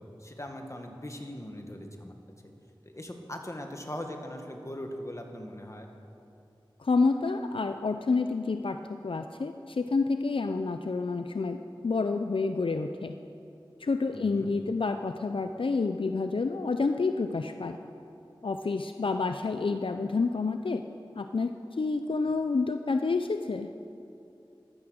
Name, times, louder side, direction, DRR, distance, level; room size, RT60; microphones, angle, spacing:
voice 1, 0.0-2.2 2.9-5.9 14.1-14.5, left 1 dB, 35° left, 3 dB, 1.8 m, -40 dB
voice 2, 6.8-13.1 13.8-17.8 18.4-20.8 21.1-21.5 21.8-23.7, left 4 dB, 75° left, 7 dB, 0.5 m, -29 dB
15.0 x 12.0 x 6.4 m, 2.7 s
wide cardioid pair, 45°, 9 cm